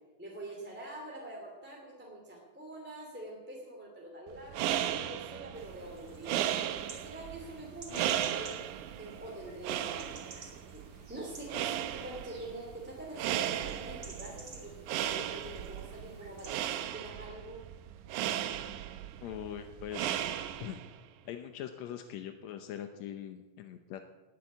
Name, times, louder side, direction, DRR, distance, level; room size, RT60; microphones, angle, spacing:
voice 1, 0.2-6.5 6.9-8.6 9.0-17.6, right 1 dB, 5° right, -2 dB, 2.1 m, -45 dB
sound 1, 4.3-21.0, right 11 dB, 75° right, 1.9 m, -36 dB
sound 2, 5.5-16.5, right 3 dB, 40° right, 3.3 m, -53 dB
voice 2, 7.9-8.2 19.2-20.1 20.6-20.8 21.2-24.0, left 10 dB, 75° left, 7 dB, 1.6 m, -42 dB
19.5 x 7.6 x 8.4 m, 1.2 s
omnidirectional pair, 4.1 m